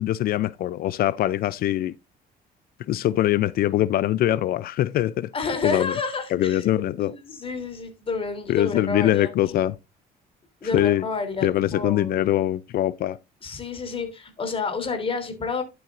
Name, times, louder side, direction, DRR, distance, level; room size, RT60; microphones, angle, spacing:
voice 1, 0.0-1.9 2.9-5.3 5.6-5.9 6.3-7.1 8.5-9.8 10.7-11.0 11.4-13.2, left 13 dB, 60° left, 0.5 m, -23 dB
voice 2, 5.3-6.6 7.0-9.3 10.6-12.3 13.4-15.6, left 4 dB, 30° left, 3.3 m, -30 dB
12.0 x 7.9 x 2.5 m
cardioid pair, 110°, 17 cm